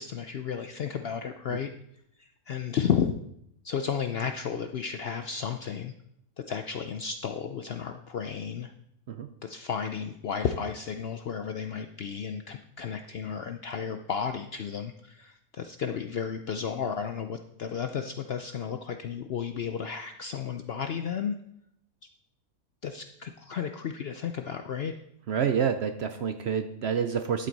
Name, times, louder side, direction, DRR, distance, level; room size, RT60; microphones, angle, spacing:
voice 1, 0.0-1.7 2.2-3.1 3.6-5.9 6.4-8.7 9.4-21.4 22.8-24.9, left 7 dB, 65° left, 7 dB, 0.6 m, -33 dB
voice 2, 25.3-27.5, right 7 dB, 60° right, 9 dB, 0.7 m, -28 dB
11.5 x 7.6 x 4.0 m, 0.76 s
omnidirectional pair, 1.5 m